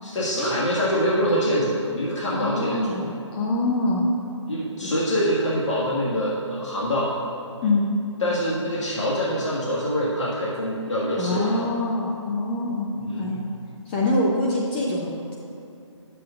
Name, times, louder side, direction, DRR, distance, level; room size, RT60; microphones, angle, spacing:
voice 1, 0.0-3.0 4.5-7.1 8.2-11.7 13.0-13.4, equal, 70° left, -7 dB, 1.9 m, -25 dB
voice 2, 2.3-4.0 4.8-4.9 7.6-7.9 11.2-12.9 13.2-13.4 13.9-15.3, left 2 dB, 20° left, -3 dB, 0.6 m, -25 dB
11.0 x 7.8 x 2.5 m, 2.7 s
hypercardioid pair, 150°, 16 cm